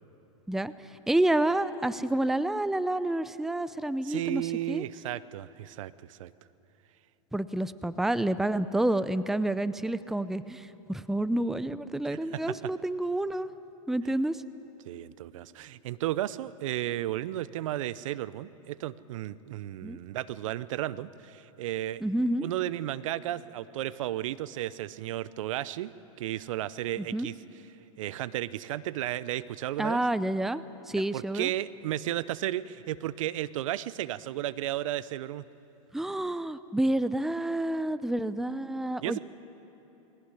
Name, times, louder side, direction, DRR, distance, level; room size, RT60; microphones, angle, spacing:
voice 1, 0.5-4.8 7.3-13.5 13.9-14.4 19.8-20.0 22.0-22.5 27.0-27.3 29.8-31.5 35.9-39.2, right 1 dB, ahead, 15 dB, 0.5 m, -29 dB
voice 2, 4.0-6.3 12.1-12.2 12.5-12.7 14.9-22.0 22.4-25.9 26.2-27.4 28.0-30.0 31.1-35.4 39.0-39.2, right 13 dB, 70° right, 18 dB, 0.6 m, -33 dB
20.5 x 17.5 x 9.8 m, 3.0 s
hypercardioid pair, 110°, 17 cm